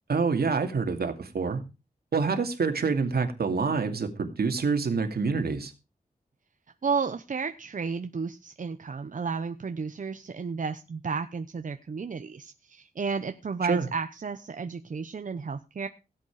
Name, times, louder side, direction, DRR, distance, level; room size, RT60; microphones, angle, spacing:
voice 1, 0.1-1.6 2.1-5.7 13.6-13.9, right 4 dB, 85° right, 6 dB, 2.4 m, -27 dB
voice 2, 6.8-15.9, right 5 dB, 55° right, 8 dB, 0.9 m, -32 dB
17.0 x 8.3 x 4.9 m, 0.30 s
wide cardioid pair, 90°, 16 cm